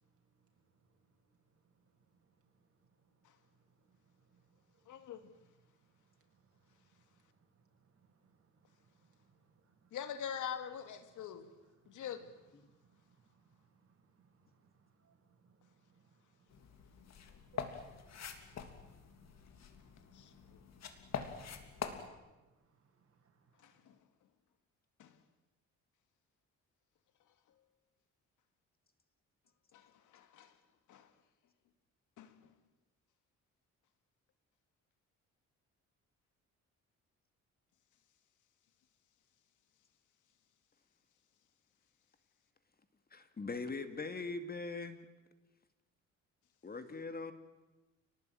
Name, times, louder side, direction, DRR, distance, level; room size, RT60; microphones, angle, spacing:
voice 1, 0.0-10.0 11.1-23.8, right 5 dB, 50° right, 6.8 m, -71 dB
voice 2, 4.9-5.3 9.9-11.5 11.9-12.3 20.1-20.6 23.6-24.0 25.0-25.2 29.7-30.5 30.9-31.1 32.2-32.5, left 8 dB, 80° left, 2.6 m, -45 dB
sound 1, 16.5-22.1, left 7 dB, 60° left, 3.3 m, -45 dB
voice 3, 43.1-45.1 46.6-47.3, left 3 dB, 30° left, 2.4 m, -41 dB
29.0 x 19.5 x 9.4 m
cardioid pair, 90°, 30 cm